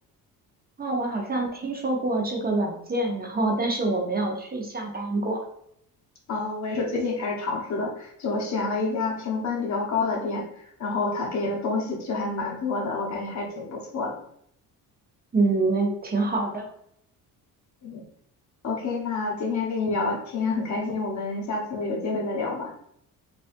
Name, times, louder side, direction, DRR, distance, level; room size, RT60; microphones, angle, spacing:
voice 1, 0.8-5.4 15.3-16.7, right 2 dB, 25° right, 0 dB, 0.7 m, -26 dB
voice 2, 6.3-10.5 10.8-14.1 17.8-18.0 18.6-22.7, left 3 dB, 50° left, -1 dB, 1.0 m, -28 dB
4.7 x 2.5 x 2.6 m, 0.70 s
cardioid pair, 115°, 36 cm